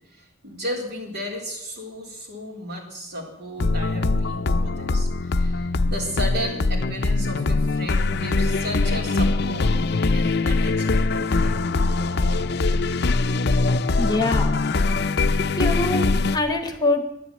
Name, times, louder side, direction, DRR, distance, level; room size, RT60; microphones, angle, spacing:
voice 1, 0.1-9.8 10.1-11.6, equal, 60° right, 0 dB, 3.8 m, -34 dB
sound 1, 3.6-16.4, left 3 dB, 55° left, 0.6 m, -22 dB
voice 2, 11.7-12.6 14.0-14.5 15.6-17.1, left 2 dB, 20° left, 7 dB, 1.2 m, -25 dB
11.5 x 11.0 x 8.5 m, 0.84 s
head